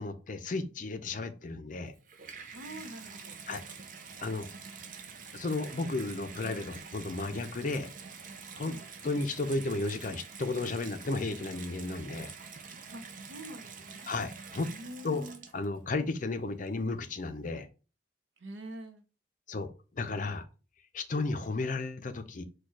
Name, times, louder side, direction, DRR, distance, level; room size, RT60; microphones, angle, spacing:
voice 1, 0.0-1.9 3.5-3.6 4.2-4.5 5.3-7.9 8.6-8.7 9.0-12.3 14.1-14.7 15.0-15.3 15.5-17.7 19.5-20.5 20.9-22.4, left 3 dB, 45° left, 0.5 m, -33 dB
Water tap faucet / Bathtub (filling or washing), 1.8-15.9 16.7-16.8, right 5 dB, 45° right, 0.6 m, -46 dB
voice 2, 2.5-3.4 8.6-8.9 12.9-14.1 14.6-15.4 18.4-19.0, right 1 dB, 80° right, 0.7 m, -46 dB
4.5 x 2.3 x 4.6 m
head